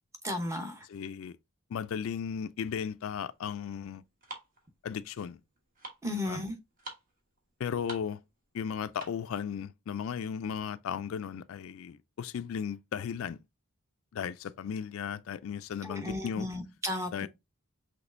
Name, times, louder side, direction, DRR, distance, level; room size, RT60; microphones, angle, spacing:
voice 1, 0.2-0.9 6.0-6.5 15.8-17.3, left 1 dB, 15° right, 0.8 m, -34 dB
voice 2, 0.9-1.3 1.7-4.0 4.8-5.4 6.3-6.4 7.6-8.2 8.5-13.4 14.1-16.5 17.1-17.3, left 7 dB, 65° left, 0.3 m, -35 dB
sound 1, 3.1-9.4, right 2 dB, 40° right, 1.2 m, -48 dB
6.0 x 3.2 x 2.5 m
head